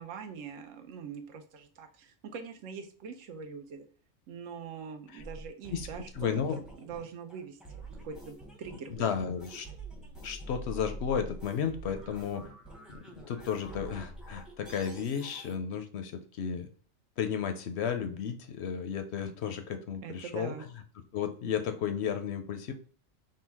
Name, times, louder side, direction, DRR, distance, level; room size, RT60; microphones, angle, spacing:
voice 1, 0.0-3.8 4.3-6.3 6.8-9.0 20.0-20.6, right 6 dB, 80° right, 6 dB, 1.0 m, -43 dB
sound 1, 5.2-15.5, right 2 dB, ahead, 0.5 m, -46 dB
voice 2, 6.2-6.6 8.9-9.7 10.2-12.4 12.9-16.7 17.2-20.5 21.1-22.7, left 7 dB, 65° left, 8 dB, 0.7 m, -33 dB
3.9 x 2.2 x 4.5 m, 0.42 s
omnidirectional pair, 1.3 m